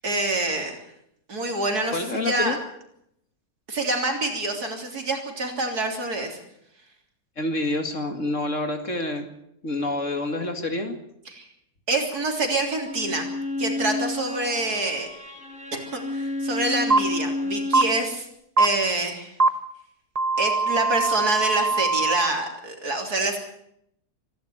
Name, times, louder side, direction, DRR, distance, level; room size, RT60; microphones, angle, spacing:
voice 1, 0.0-0.8 1.3-2.0 2.2-2.6 3.7-6.4 11.3-11.4 11.9-13.3 13.6-15.1 15.9-18.3 18.6-19.3 20.4-23.4, right 2 dB, 70° right, 3 dB, 3.8 m, -26 dB
voice 2, 1.9-2.6 3.9-4.0 7.4-9.2 9.6-11.0, left 2 dB, 50° left, 5 dB, 2.6 m, -27 dB
Bowed string instrument, 12.6-18.0, left 2 dB, 5° right, 5.1 m, -31 dB
sound 1, 16.9-17.0 17.7-17.8 18.6-18.7 19.4-19.5 20.2-22.3, right 3 dB, 25° right, 1.1 m, -21 dB
25.5 x 11.5 x 8.8 m, 0.77 s
omnidirectional pair, 1.8 m